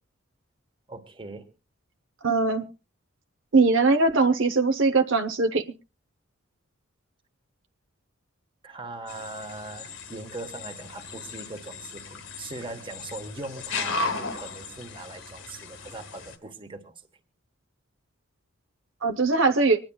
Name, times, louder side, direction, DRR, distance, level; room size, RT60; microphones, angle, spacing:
voice 1, 0.9-1.5 8.6-17.0, right 2 dB, 25° right, 7 dB, 1.3 m, -40 dB
voice 2, 2.2-2.6 3.5-5.6 19.0-19.8, right 3 dB, 65° right, 7 dB, 0.8 m, -21 dB
sound 1, 9.1-16.3, left 3 dB, 65° left, 1.4 m, -36 dB
25.0 x 10.5 x 2.3 m, 0.29 s
head